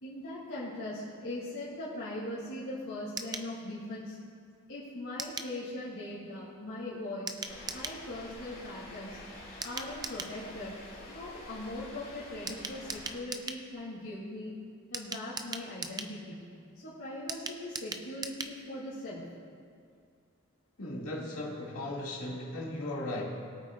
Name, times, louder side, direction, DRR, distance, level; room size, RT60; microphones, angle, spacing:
voice 1, 0.0-4.2 4.7-7.3 7.7-9.2 9.6-10.8 11.1-14.5 14.9-16.4 16.7-19.2, left 1 dB, 65° left, -10 dB, 3.0 m, -40 dB
sound 1, 3.2-3.5 5.2-5.5 7.3-8.0 9.6-10.4 12.5-13.6 14.9-16.1 17.3-18.6 18.9-19.0 19.2-19.3, right 4 dB, 20° right, 0.4 m, -39 dB
sound 2, 7.5-13.2, left 2 dB, 40° left, 2.1 m, -48 dB
voice 2, 20.8-23.2, left 1 dB, 80° left, -4 dB, 2.3 m, -37 dB
22.0 x 8.8 x 2.5 m, 2.3 s
head